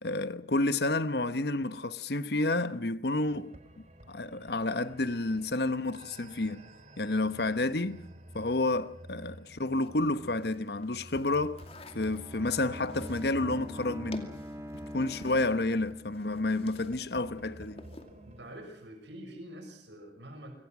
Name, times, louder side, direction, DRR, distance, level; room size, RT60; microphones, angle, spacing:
voice 1, 0.0-6.6 7.0-8.0 8.3-11.6 11.9-14.3 14.9-17.9, left 2 dB, 60° left, 1.1 m, -30 dB
sound 1, 3.2-18.5, right 1 dB, 40° right, 3.2 m, -51 dB
sound 2, 9.7-17.1 17.4-18.2, left 2 dB, 30° left, 2.4 m, -52 dB
Bowed string instrument, 11.5-16.3, equal, 15° right, 2.0 m, -44 dB
voice 2, 18.2-20.6, right 1 dB, 75° right, 6.7 m, -46 dB
26.0 x 25.0 x 6.1 m
head